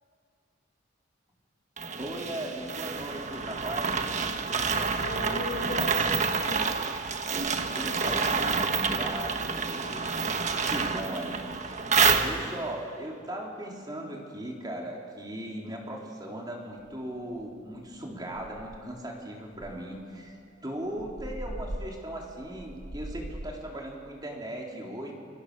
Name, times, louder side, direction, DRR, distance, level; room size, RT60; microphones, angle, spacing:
sound 1, 1.8-12.7, right 5 dB, 40° right, 1.5 m, -28 dB
voice 1, 2.0-4.0 7.7-10.2 10.7-11.8 12.1-20.4 20.6-25.1, right 1 dB, 20° right, -1 dB, 3.8 m, -38 dB
voice 2, 4.9-6.7 7.8-8.6, left 2 dB, 85° left, -1 dB, 7.6 m, -38 dB
sound 2, 16.9-17.0 17.4-17.6 17.9-18.0 18.3-19.0 19.6-23.7, right 1 dB, 65° right, 1.2 m, -41 dB
28.5 x 24.5 x 6.9 m, 2.1 s
head